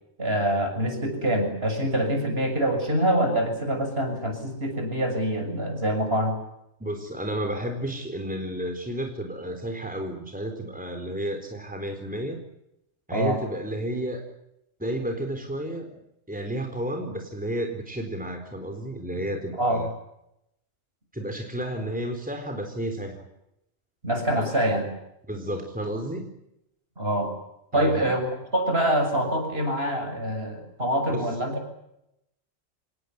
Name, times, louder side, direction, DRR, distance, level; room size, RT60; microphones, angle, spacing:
voice 1, 0.2-6.4 13.1-13.4 19.6-19.8 24.0-24.9 27.0-27.3 27.7-28.3 28.5-31.7, right 1 dB, 50° right, 5 dB, 7.3 m, -25 dB
voice 2, 6.8-12.4 13.1-14.2 14.8-15.9 16.3-19.9 21.1-23.2 24.4-24.6 25.3-26.3 27.7-28.2 31.1-31.4, right 1 dB, 5° right, 4 dB, 3.9 m, -32 dB
26.5 x 20.0 x 9.4 m, 0.83 s
omnidirectional pair, 1.4 m